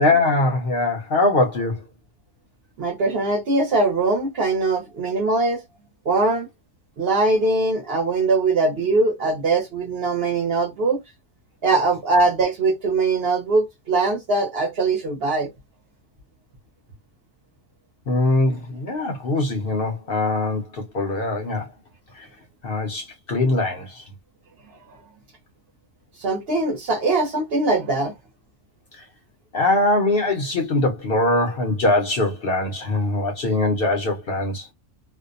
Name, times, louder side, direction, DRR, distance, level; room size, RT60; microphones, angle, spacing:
voice 1, 0.0-1.8 18.1-21.7 22.1-22.3 22.6-24.0 28.9-29.0 29.5-34.7, left 2 dB, 55° left, 0.7 m, -22 dB
voice 2, 2.8-5.6 6.0-6.5 7.0-11.0 11.6-15.5 26.2-28.1, right 3 dB, 55° right, 1.0 m, -21 dB
2.6 x 2.1 x 2.5 m
omnidirectional pair, 1.4 m